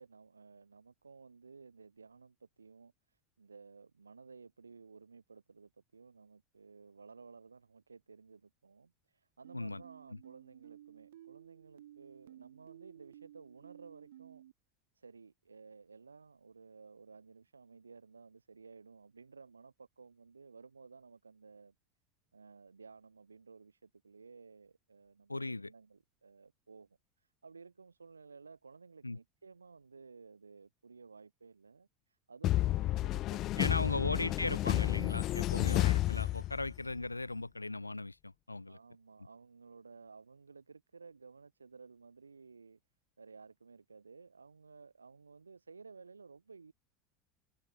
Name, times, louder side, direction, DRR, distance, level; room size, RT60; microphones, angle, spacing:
voice 1, 0.0-2.9 3.4-14.4 15.0-21.7 22.3-27.0 27.4-31.9 32.3-34.1 35.3-35.6 38.7-42.8 43.2-46.7, right 4 dB, 80° right, 2.2 m, -56 dB
sound 1, 9.4-14.5, right 12 dB, 65° right, 2.2 m, -56 dB
voice 2, 25.3-25.7 29.0-29.2 33.6-38.8, left 2 dB, 90° left, 0.6 m, -37 dB
sound 2, 32.4-36.9, left 15 dB, 45° left, 0.5 m, -31 dB
figure-of-eight pair, 80°, 0 cm